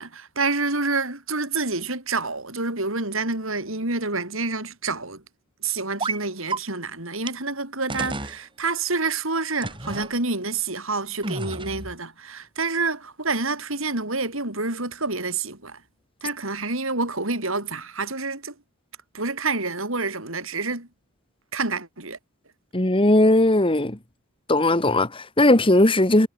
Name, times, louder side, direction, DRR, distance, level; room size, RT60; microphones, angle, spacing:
voice 1, 0.0-5.2 5.6-15.8 16.2-18.5 19.1-20.9 21.5-22.2, right 3 dB, 65° right, 6.0 m, -28 dB
sound 1, 6.0-6.2 6.5-6.6 7.3-7.4 7.9-8.4 9.6-10.1 11.2-11.9, right 3 dB, 25° right, 7.9 m, -30 dB
voice 2, 22.7-24.0 24.5-26.3, left 1 dB, 25° left, 1.7 m, -18 dB
head